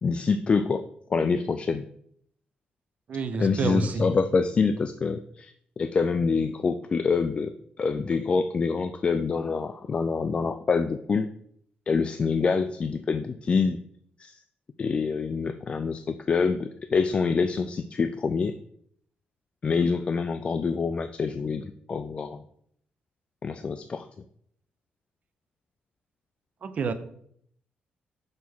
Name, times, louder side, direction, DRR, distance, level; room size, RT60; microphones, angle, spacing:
voice 1, 0.0-1.9 3.4-11.3 11.9-13.8 14.2-14.4 14.8-18.5 19.6-22.4 23.4-24.1, left 5 dB, 30° left, 9 dB, 0.3 m, -26 dB
voice 2, 3.1-4.1 26.6-26.9, right 4 dB, 45° right, 10 dB, 0.6 m, -28 dB
6.4 x 3.5 x 6.0 m, 0.67 s
cardioid pair, 140°, 3 cm